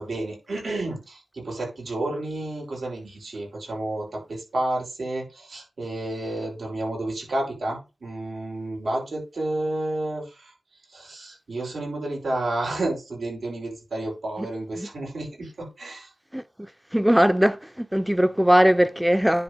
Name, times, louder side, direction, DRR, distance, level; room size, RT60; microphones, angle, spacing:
voice 1, 0.0-10.5 10.9-16.1, right 2 dB, 85° right, 5.4 m, -31 dB
voice 2, 16.9-19.4, equal, 5° right, 0.6 m, -20 dB
10.0 x 4.3 x 5.1 m
wide cardioid pair, 105°, 0 cm